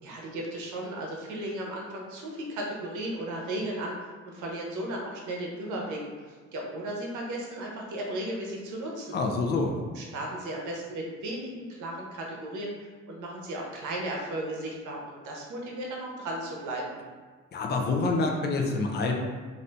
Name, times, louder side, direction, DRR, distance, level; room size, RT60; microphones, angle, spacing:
voice 1, 0.0-6.3 6.5-9.2 9.9-17.0, right 1 dB, 75° right, -1 dB, 0.8 m, -35 dB
voice 2, 9.1-9.8 17.5-19.1, left 3 dB, 35° left, 2 dB, 0.4 m, -27 dB
2.6 x 2.6 x 3.3 m, 1.4 s
cardioid pair, 90°, 30 cm